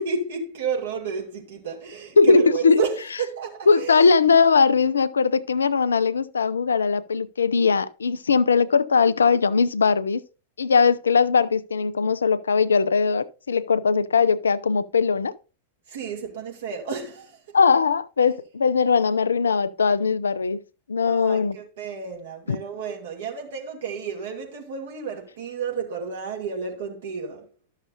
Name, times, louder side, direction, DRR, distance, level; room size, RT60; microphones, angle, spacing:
voice 1, 0.0-4.1 15.9-17.6 21.0-27.5, right 5 dB, 60° right, 2.3 m, -31 dB
voice 2, 2.2-2.8 3.7-10.2 10.6-15.3 17.5-20.6 20.9-21.6 22.5-22.6, left 5 dB, 70° left, 0.4 m, -20 dB
12.5 x 6.5 x 2.6 m
figure-of-eight pair, 90°, 0 cm